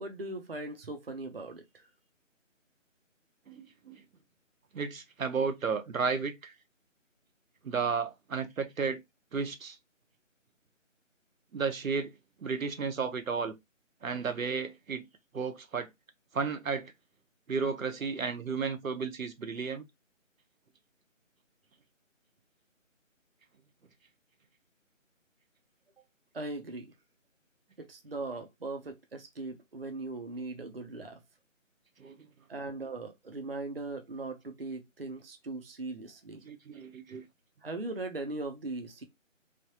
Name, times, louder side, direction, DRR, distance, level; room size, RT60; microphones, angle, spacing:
voice 1, 0.0-1.6 26.3-26.9 27.8-31.2 32.5-36.4 37.6-39.0, right 2 dB, 50° right, 0.5 m, -39 dB
voice 2, 3.5-4.0 4.7-6.5 7.6-9.0 9.3-9.8 11.5-12.1 12.4-13.5 14.0-15.1 15.3-15.9 16.3-16.9 17.5-19.8 32.0-32.1 36.5-37.2, right 5 dB, 90° right, 0.8 m, -33 dB
3.2 x 2.1 x 2.7 m
figure-of-eight pair, 180°, 39 cm